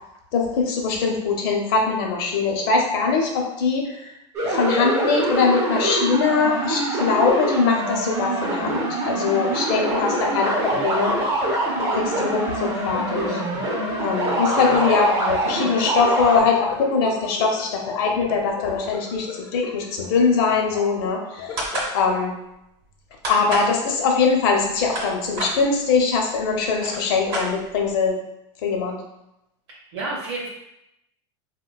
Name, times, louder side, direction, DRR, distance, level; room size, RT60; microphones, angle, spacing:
voice 1, 0.3-4.1 4.4-11.2 11.8-13.4 14.0-19.3 19.5-21.6 21.9-22.3 23.3-28.2 28.6-29.0, left 5 dB, 50° left, 1 dB, 0.6 m, -22 dB
sound 1, 4.3-16.4, right 1 dB, 15° right, 0.4 m, -24 dB
sound 2, 9.7-22.1, left 5 dB, 90° left, 0.6 m, -37 dB
voice 2, 14.7-15.0 29.9-30.5, right 2 dB, 65° right, -4 dB, 0.6 m, -30 dB
sound 3, 21.6-21.9 23.2-23.7 24.6-25.5 26.4-26.5 26.7-27.9, right 1 dB, 35° right, 0.8 m, -28 dB
3.9 x 2.2 x 2.2 m, 0.86 s
supercardioid pair, 170°, 15 cm